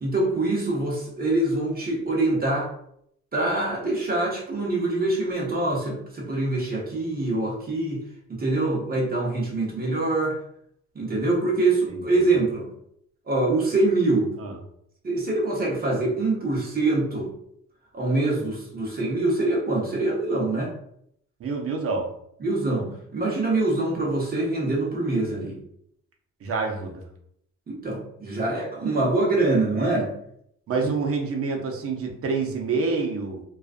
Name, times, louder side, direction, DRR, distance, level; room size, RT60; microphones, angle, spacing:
voice 1, 0.0-2.7 3.3-8.0 8.4-10.4 10.9-12.7 13.3-14.3 15.0-17.3 17.9-20.7 22.4-25.6 27.7-30.1 30.8-30.9, right 2 dB, 30° right, -3 dB, 0.9 m, -24 dB
voice 2, 21.4-22.1 26.4-27.0 30.7-33.4, right 4 dB, 50° right, 2 dB, 0.6 m, -27 dB
2.4 x 2.4 x 2.4 m, 0.73 s
cardioid pair, 90°, 30 cm